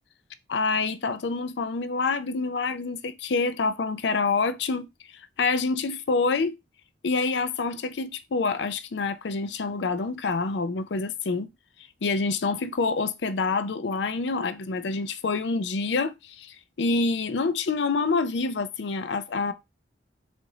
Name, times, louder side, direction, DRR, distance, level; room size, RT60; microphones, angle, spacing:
voice 1, 0.5-4.9 5.4-6.6 7.0-11.5 12.0-19.5, left 4 dB, 70° left, 0.5 m, -27 dB
3.9 x 2.6 x 4.7 m
head